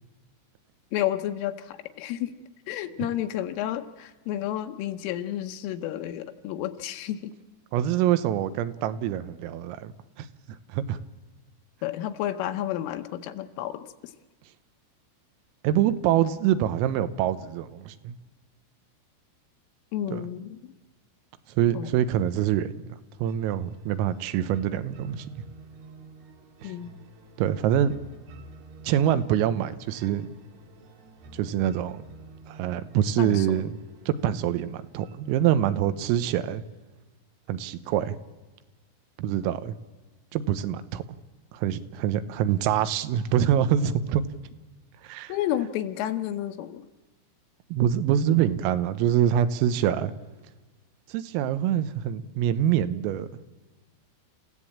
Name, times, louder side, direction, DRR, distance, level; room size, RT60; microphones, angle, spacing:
voice 1, 0.9-2.4 2.7-7.3 11.8-13.8 19.9-20.7 21.7-22.0 26.6-27.0 33.2-33.7 45.3-46.8, left 12 dB, 80° left, 8 dB, 3.3 m, -31 dB
voice 2, 7.7-9.9 10.2-11.0 15.6-18.2 20.1-20.2 21.6-22.7 23.2-25.4 26.6-26.7 27.4-27.9 28.9-30.3 31.3-32.0 32.5-33.7 34.1-36.6 37.5-38.2 39.2-39.8 40.3-41.0 41.5-44.2 45.0-45.4 47.7-50.1 51.1-53.3, right 10 dB, 85° right, 12 dB, 3.6 m, -25 dB
sound 1, 23.2-36.2, right 2 dB, 60° right, 3.3 m, -49 dB
28.5 x 15.0 x 8.6 m, 1.3 s
omnidirectional pair, 6.0 m